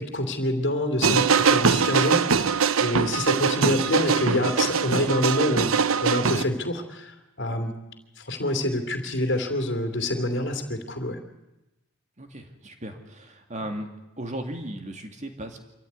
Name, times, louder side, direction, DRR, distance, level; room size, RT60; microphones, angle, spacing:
voice 1, 0.0-7.7 8.2-11.2, left 1 dB, 50° left, 5 dB, 2.9 m, -27 dB
sound 1, 1.0-6.4, right 6 dB, 75° right, 0.8 m, -22 dB
voice 2, 12.2-13.9 14.2-15.6, right 1 dB, 35° right, 5 dB, 2.5 m, -36 dB
25.5 x 14.5 x 9.6 m, 1.0 s
head